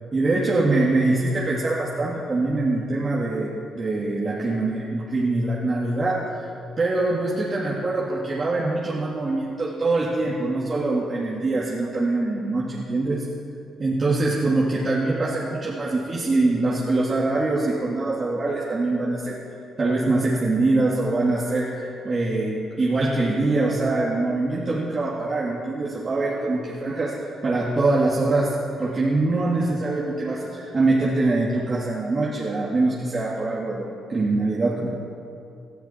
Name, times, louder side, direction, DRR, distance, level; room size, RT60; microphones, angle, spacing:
voice 1, 0.1-6.2 6.8-13.2 13.8-19.4 19.8-28.5 28.8-35.0, right 2 dB, 35° right, -6 dB, 2.3 m, -23 dB
19.0 x 13.0 x 4.4 m, 2.5 s
cardioid pair, 90°, 0 cm